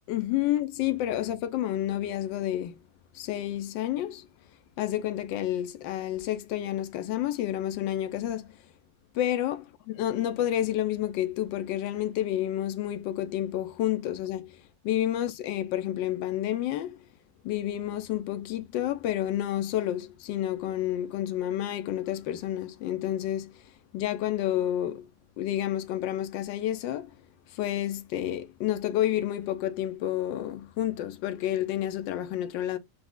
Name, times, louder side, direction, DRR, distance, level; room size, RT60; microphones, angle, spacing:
voice 1, 0.1-2.8 3.1-4.3 4.8-8.5 9.1-9.6 10.0-14.6 14.8-17.0 17.4-23.5 23.9-25.1 25.4-27.1 27.5-32.8, left 12 dB, 90° left, 1.3 m, -29 dB
4.6 x 2.1 x 3.6 m
omnidirectional pair, 2.0 m